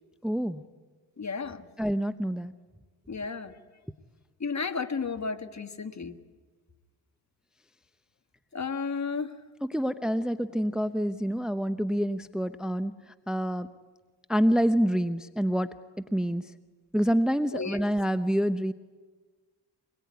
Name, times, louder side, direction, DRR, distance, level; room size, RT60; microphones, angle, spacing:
voice 1, 0.2-0.6 1.8-2.5 9.6-13.0 13.3-13.7 14.3-15.7 16.1-16.5 16.9-18.7, equal, ahead, 11 dB, 0.8 m, -27 dB
voice 2, 1.2-1.6 3.1-3.5 4.4-6.2 8.5-9.3 17.5-17.8, left 5 dB, 40° left, 9 dB, 1.7 m, -33 dB
24.5 x 21.5 x 9.6 m, 1.4 s
cardioid pair, 85°, 44 cm